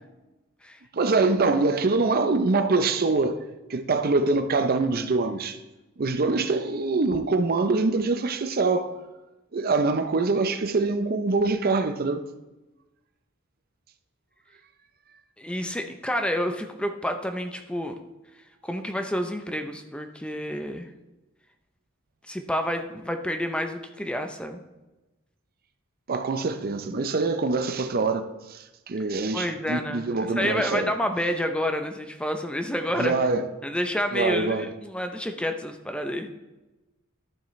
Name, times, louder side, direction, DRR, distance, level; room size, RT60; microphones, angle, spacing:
voice 1, 0.9-3.4 3.7-5.6 6.0-8.9 9.5-12.2 26.1-30.9 33.0-33.5 34.1-34.7, right 3 dB, 45° right, 0.5 m, -24 dB
voice 2, 15.4-18.0 18.6-20.9 22.2-24.6 29.3-33.1 33.6-36.3, equal, 5° left, 0.5 m, -29 dB
12.5 x 7.2 x 3.1 m
head